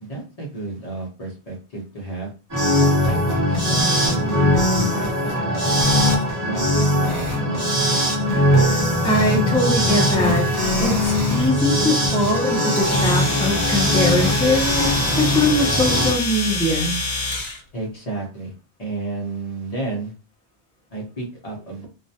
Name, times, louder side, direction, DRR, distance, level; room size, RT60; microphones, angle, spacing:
voice 1, 0.0-2.3 3.1-5.8 6.4-7.8 17.7-18.5 18.8-20.1 20.9-21.9, right 3 dB, 40° left, -1 dB, 0.7 m, -31 dB
sound 1, 2.5-16.1, left 1 dB, 20° right, 0.8 m, -20 dB
voice 2, 9.0-10.4 10.8-17.0, left 1 dB, 10° left, -1 dB, 0.3 m, -22 dB
Domestic sounds home sounds, 12.8-17.6, left 3 dB, 70° left, 1.0 m, -26 dB
2.3 x 2.1 x 2.7 m, 0.33 s
omnidirectional pair, 1.0 m